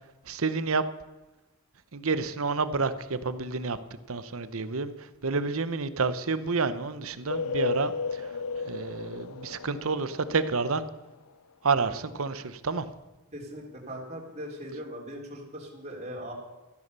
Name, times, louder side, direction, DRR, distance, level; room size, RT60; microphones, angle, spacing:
voice 1, 0.3-0.8 1.9-3.8 4.1-4.9 5.2-8.2 8.7-10.8 11.6-12.8, right 4 dB, 65° right, 13 dB, 0.9 m, -29 dB
sound 1, 7.3-10.9, left 4 dB, 85° left, 0.7 m, -34 dB
voice 2, 13.3-16.3, equal, 30° right, -3 dB, 3.6 m, -40 dB
14.0 x 11.0 x 6.8 m, 1.1 s
head